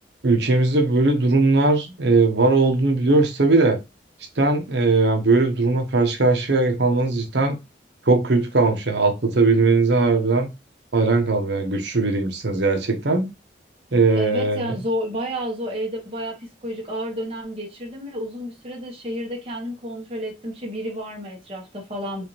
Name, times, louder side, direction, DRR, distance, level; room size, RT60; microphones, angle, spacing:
voice 1, 0.2-3.8 4.4-7.6 8.1-10.5 10.9-13.3 13.9-14.6, right 3 dB, 65° right, 0.9 m, -19 dB
voice 2, 14.1-22.2, equal, 30° right, 1.2 m, -30 dB
4.7 x 2.5 x 3.0 m
head